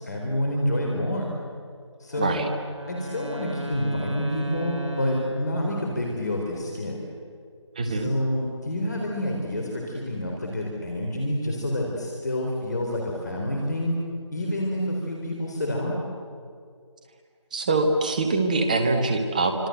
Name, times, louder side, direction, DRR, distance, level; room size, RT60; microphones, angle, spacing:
voice 1, 0.0-1.4 2.0-2.3 2.9-7.0 7.8-14.0 14.3-16.0, left 1 dB, 35° left, 0 dB, 3.9 m, -28 dB
Wind instrument woodwind instrument, 2.1-6.2, right 1 dB, 75° right, 5.9 m, -35 dB
voice 2, 2.2-2.5 7.7-8.1 17.5-19.5, right 3 dB, 15° right, 6 dB, 1.2 m, -23 dB
27.5 x 26.0 x 7.9 m, 2.1 s
figure-of-eight pair, 165°, 15 cm